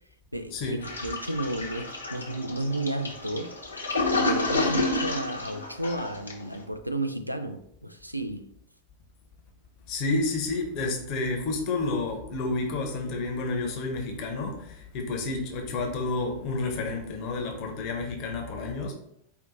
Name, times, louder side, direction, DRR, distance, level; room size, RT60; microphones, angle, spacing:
voice 1, 0.3-3.6 4.2-8.5, right 1 dB, 90° right, 0.3 m, -32 dB
Toilet flush, 0.8-6.5, left 2 dB, 75° left, 0.9 m, -30 dB
voice 2, 9.9-18.9, left 3 dB, 40° left, 0.9 m, -30 dB
4.9 x 2.6 x 4.0 m
figure-of-eight pair, 90°, 0 cm